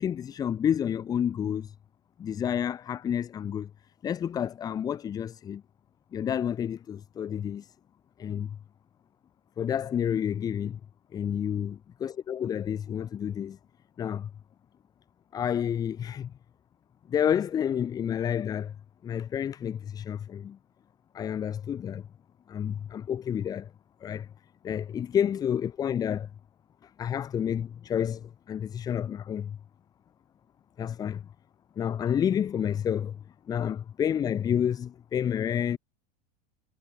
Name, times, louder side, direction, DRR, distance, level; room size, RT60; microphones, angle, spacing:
voice 1, 0.0-1.7 2.2-3.7 4.0-5.6 6.1-7.7 8.2-8.6 9.6-10.8 11.1-11.8 12.0-13.6 14.0-14.3 15.3-16.3 17.1-18.7 19.0-20.6 21.1-22.1 22.5-23.7 24.0-24.3 24.6-26.3 26.8-29.6 30.8-31.2 31.8-33.2 33.5-35.8, left 9 dB, 20° left, 0.8 m, -29 dB
supercardioid pair, 160°, 21 cm